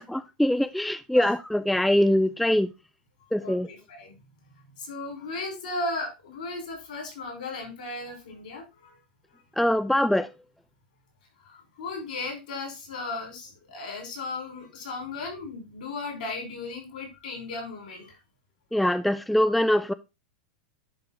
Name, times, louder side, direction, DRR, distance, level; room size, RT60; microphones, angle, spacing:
voice 1, 0.0-2.7 3.3-3.7 9.6-10.3 18.7-19.9, left 1 dB, ahead, 0.3 m, -23 dB
voice 2, 3.4-4.2 4.8-9.0 11.4-18.2, left 3 dB, 70° left, 5.6 m, -36 dB
10.5 x 3.8 x 4.2 m
hypercardioid pair, 120°, 5 cm